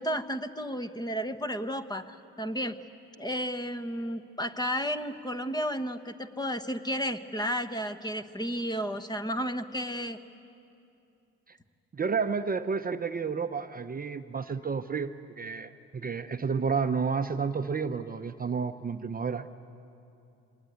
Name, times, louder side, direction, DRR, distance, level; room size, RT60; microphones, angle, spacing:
voice 1, 0.0-2.8 3.2-10.2, equal, 15° left, 9 dB, 1.1 m, -32 dB
voice 2, 11.9-19.5, right 5 dB, 30° right, 8 dB, 0.7 m, -31 dB
26.0 x 20.0 x 9.4 m, 2.8 s
cardioid pair, 90°, 30 cm